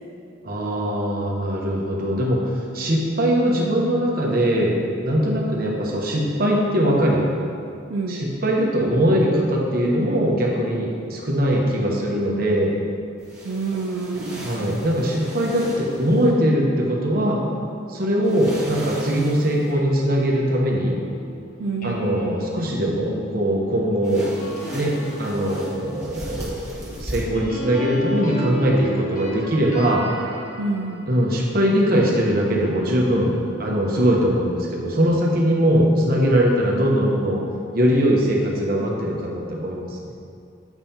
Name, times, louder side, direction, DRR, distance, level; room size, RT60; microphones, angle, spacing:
voice 1, 0.4-4.8 5.0-7.3 8.1-12.7 14.3-17.4 17.9-21.0 21.8-24.3 24.7-30.1 31.1-37.4 37.7-40.0, equal, 50° right, -2 dB, 1.0 m, -21 dB
voice 2, 7.9-8.3 13.4-14.8 21.6-22.3 30.6-31.1, right 3 dB, 85° right, 1 dB, 0.4 m, -28 dB
sound 1, 13.2-16.3 18.2-19.7 24.0-27.2, right 1 dB, 15° right, 1.5 m, -37 dB
sound 2, 19.7-32.2 32.7-35.6, equal, 45° left, 1.1 m, -36 dB
8.2 x 5.5 x 2.8 m, 2.4 s
head